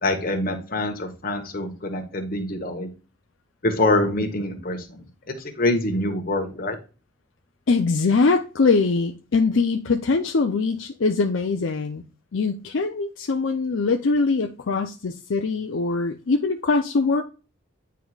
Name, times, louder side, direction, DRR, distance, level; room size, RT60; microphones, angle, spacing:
voice 1, 0.0-2.9 3.6-6.8, left 2 dB, 45° left, 1.2 m, -25 dB
voice 2, 7.7-12.0 12.3-17.2, left 4 dB, 70° left, 0.5 m, -22 dB
9.0 x 4.7 x 2.3 m
head